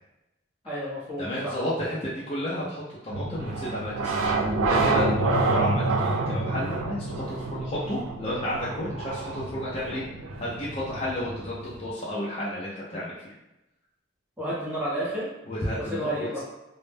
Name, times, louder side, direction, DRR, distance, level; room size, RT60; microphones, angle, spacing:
voice 1, 0.6-1.5 14.4-15.3 15.9-16.4, right 1 dB, 10° right, -8 dB, 0.8 m, -31 dB
voice 2, 1.2-4.4 4.7-10.0 10.4-13.3 15.5-16.4, left 1 dB, 30° left, -7 dB, 0.5 m, -32 dB
sound 1, 3.1-11.9, right 3 dB, 85° right, 0.4 m, -28 dB
2.1 x 2.1 x 3.2 m, 0.96 s
head